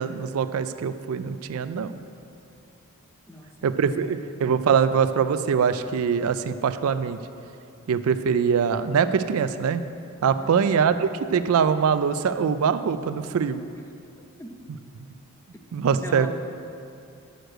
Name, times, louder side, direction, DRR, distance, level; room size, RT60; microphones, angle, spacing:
voice 1, 0.0-1.9 3.6-7.2 7.9-9.8 10.2-13.6 15.7-16.3, right 6 dB, 70° right, 12 dB, 0.4 m, -23 dB
voice 2, 3.3-4.2 10.4-10.8 14.4-14.6 16.0-16.3, equal, 10° left, 3 dB, 0.6 m, -41 dB
6.5 x 6.5 x 7.7 m, 2.5 s
head